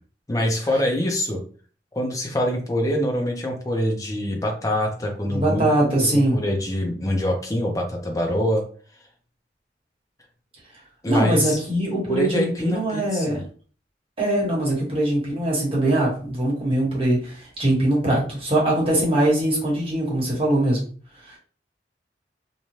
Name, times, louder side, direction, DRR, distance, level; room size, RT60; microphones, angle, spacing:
voice 1, 0.3-1.4 2.0-8.6 11.0-11.6 12.1-13.4, left 1 dB, 20° left, 1 dB, 0.6 m, -25 dB
voice 2, 5.3-6.4 11.1-13.4 14.2-20.8 21.2-21.3, right 1 dB, 35° right, -3 dB, 1.2 m, -22 dB
2.7 x 2.2 x 3.1 m, 0.41 s
head